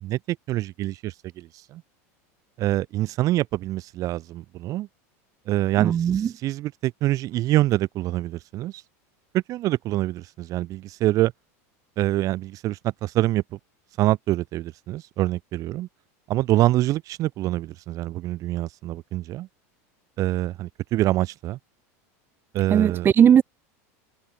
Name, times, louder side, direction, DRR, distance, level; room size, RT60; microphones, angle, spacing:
voice 1, 0.0-1.8 2.6-4.9 5.5-8.7 9.3-11.3 12.0-13.4 14.0-15.9 16.3-19.5 20.2-21.6 22.5-23.1, right 15 dB, 45° right, 5.8 m, -25 dB
voice 2, 5.8-6.3 22.7-23.4, right 8 dB, 25° right, 2.8 m, -18 dB
supercardioid pair, 135°, 8 cm